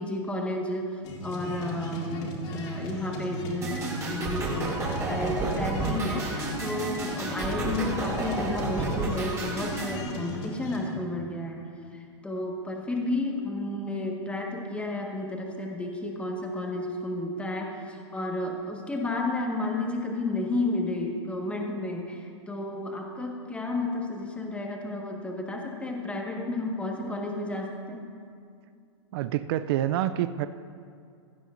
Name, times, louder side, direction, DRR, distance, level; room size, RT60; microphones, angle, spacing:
voice 1, 0.0-11.6 11.9-28.1, left 2 dB, 10° left, 0 dB, 1.4 m, -32 dB
sound 1, 1.0-11.0, equal, 40° left, 2.2 m, -38 dB
sound 2, 3.6-10.0, right 2 dB, 20° right, 2.6 m, -31 dB
voice 2, 29.1-30.5, right 12 dB, 55° right, 12 dB, 0.4 m, -27 dB
16.0 x 12.0 x 2.6 m, 2.3 s
hypercardioid pair, 120°, 16 cm